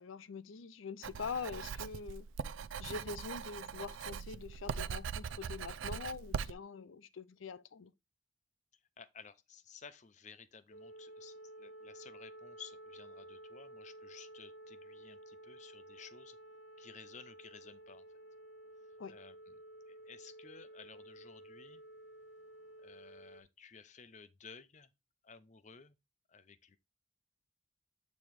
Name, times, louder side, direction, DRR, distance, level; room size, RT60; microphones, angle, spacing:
voice 1, 0.0-7.9 19.0-19.2, left 5 dB, 90° left, 0.5 m, -44 dB
Writing, 1.0-6.5, right 6 dB, 85° right, 0.4 m, -41 dB
voice 2, 9.0-16.4 16.8-18.1 19.1-19.6 19.9-21.8 22.8-24.9 25.2-26.0 26.3-26.8, left 6 dB, 40° left, 0.6 m, -55 dB
sound 1, 10.7-23.4, right 1 dB, 65° left, 0.8 m, -53 dB
8.8 x 3.0 x 4.6 m
head